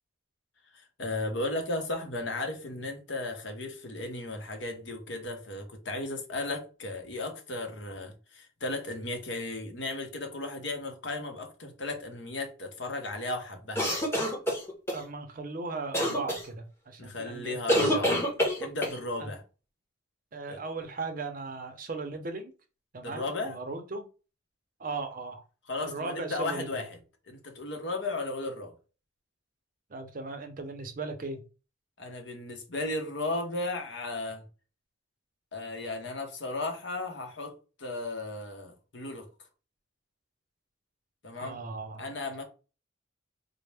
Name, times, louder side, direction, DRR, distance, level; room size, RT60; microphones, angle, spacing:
voice 1, 0.7-14.0 17.0-18.2 18.6-19.4 20.5-20.6 23.0-23.6 25.7-27.0 27.3-28.7 32.0-34.4 35.5-39.3 41.2-41.6 42.0-42.4, left 2 dB, 65° left, 0.9 m, -35 dB
sound 1, 13.7-15.0 15.9-16.4 17.7-19.0, equal, 15° left, 0.8 m, -26 dB
voice 2, 14.9-18.1 19.2-19.3 20.3-22.5 22.9-24.1 24.8-25.4 25.8-26.7 29.9-31.4 41.4-42.1, right 3 dB, 45° right, 0.5 m, -37 dB
4.2 x 2.0 x 3.3 m
head